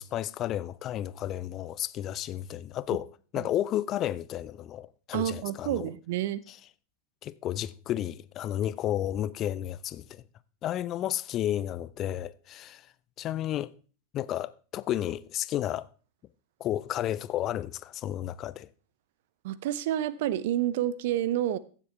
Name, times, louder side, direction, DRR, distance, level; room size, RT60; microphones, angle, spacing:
voice 1, 0.0-3.1 3.3-5.9 7.2-10.2 10.6-12.8 13.2-13.7 14.1-15.9 16.6-18.7, left 12 dB, 35° left, 0.4 m, -32 dB
voice 2, 5.1-6.4 19.4-21.6, right 12 dB, 50° right, 0.6 m, -29 dB
15.5 x 7.4 x 3.4 m
figure-of-eight pair, 90°, 0 cm